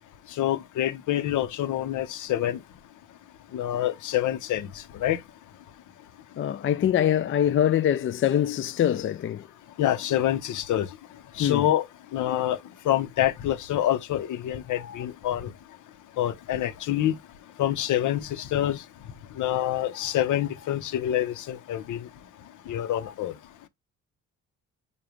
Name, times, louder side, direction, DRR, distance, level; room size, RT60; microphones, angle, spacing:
voice 1, 0.4-2.6 3.5-4.7 5.0-5.2 9.8-10.9 11.4-11.8 12.1-12.6 12.8-15.5 16.2-17.1 17.6-18.8 19.4-22.0 22.7-23.3, left 12 dB, 80° left, 1.0 m, -26 dB
voice 2, 6.4-9.5 11.4-11.7, left 10 dB, 45° left, 0.5 m, -24 dB
6.9 x 2.5 x 3.1 m
cardioid pair, 90°, 30 cm